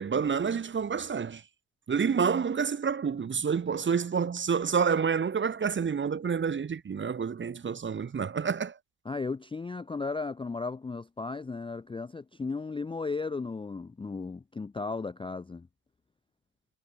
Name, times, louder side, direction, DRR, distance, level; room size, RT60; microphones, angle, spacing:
voice 1, 0.0-1.4 1.9-8.8, right 6 dB, 25° right, 0.9 m, -28 dB
voice 2, 9.0-15.7, left 4 dB, 10° left, 0.5 m, -35 dB
supercardioid pair, 80°, 49 cm